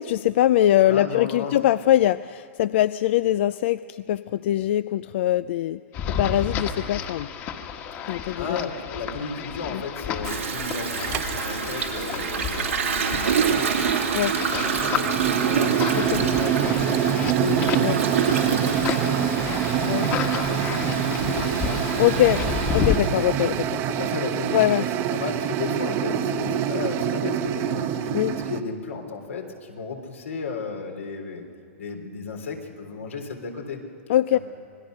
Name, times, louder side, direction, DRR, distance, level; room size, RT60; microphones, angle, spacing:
voice 1, 0.0-5.8 6.2-7.3 8.1-8.7 9.7-9.8 14.1-14.3 16.0-16.2 17.8-18.0 19.8-20.1 22.0-22.4 22.7-23.8 24.5-24.8 28.1-28.4 34.1-34.4, left 13 dB, 60° left, 16 dB, 0.4 m, -22 dB
voice 2, 0.8-1.6 8.4-14.1 14.4-17.6 18.0-19.4 19.7-23.3 23.9-31.4 31.8-33.8 34.3-34.4, left 4 dB, 85° left, 2 dB, 3.7 m, -34 dB
sound 1, 5.9-23.0, left 7 dB, 35° left, 1.7 m, -31 dB
Toilet flush, 10.2-23.7, right 7 dB, 90° right, 2.6 m, -28 dB
sound 2, 11.1-11.4 13.7-28.6, right 9 dB, 40° right, 1.0 m, -26 dB
27.0 x 19.5 x 6.5 m, 2.7 s
hypercardioid pair, 125°, 7 cm